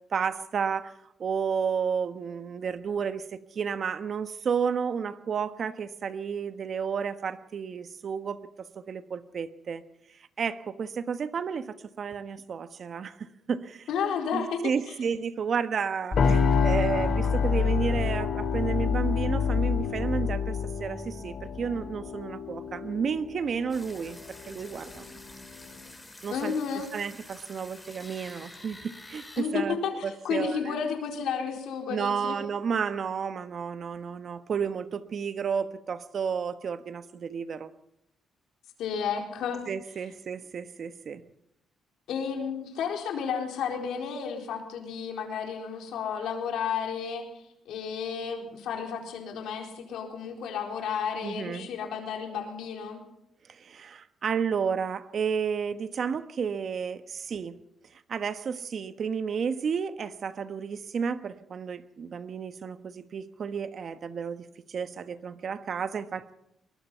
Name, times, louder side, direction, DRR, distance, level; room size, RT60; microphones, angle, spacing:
voice 1, 0.1-0.9 1.2-9.8 10.4-13.9 14.3-24.2 24.5-25.2 26.2-26.5 26.9-29.8 30.0-30.8 31.9-37.7 39.7-41.2 51.2-51.7 53.5-57.6 58.1-66.3, right 6 dB, 50° right, 11 dB, 1.2 m, -32 dB
voice 2, 13.9-14.9 26.3-26.9 29.4-32.4 38.8-39.6 42.1-47.3 47.7-53.0, left 6 dB, 80° left, 3 dB, 4.3 m, -32 dB
sound 1, 16.1-22.1, left 6 dB, 35° left, 3.3 m, -28 dB
sound 2, 16.2-25.9, left 5 dB, 60° left, 3.1 m, -32 dB
sound 3, 23.7-29.4, left 1 dB, 10° left, 5.0 m, -48 dB
22.5 x 20.5 x 5.7 m, 0.81 s
cardioid pair, 90°, 0 cm